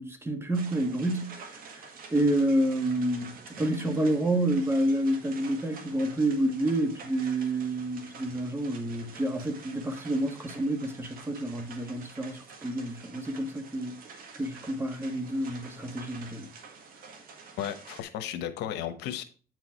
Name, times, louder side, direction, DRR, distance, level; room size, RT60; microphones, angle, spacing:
voice 1, 0.0-3.3 3.6-14.0 14.3-16.5, right 1 dB, 15° right, 1.4 m, -29 dB
sound 1, 0.5-18.0, right 5 dB, 60° right, 1.8 m, -48 dB
voice 2, 17.6-19.2, left 10 dB, 90° left, 1.0 m, -34 dB
9.1 x 4.8 x 4.5 m
cardioid pair, 110°, 17 cm